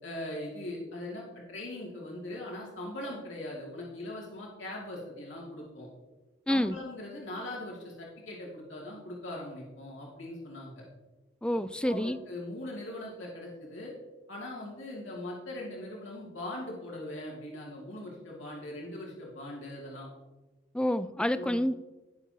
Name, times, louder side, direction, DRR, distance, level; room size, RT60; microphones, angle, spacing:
voice 1, 0.0-5.9 6.5-10.8 11.8-13.9 14.3-20.1 21.4-21.6, left 1 dB, 70° left, -3 dB, 2.7 m, -40 dB
voice 2, 11.4-12.2 20.7-21.7, left 1 dB, 5° left, 13 dB, 0.3 m, -28 dB
18.5 x 7.2 x 2.9 m, 1.1 s
head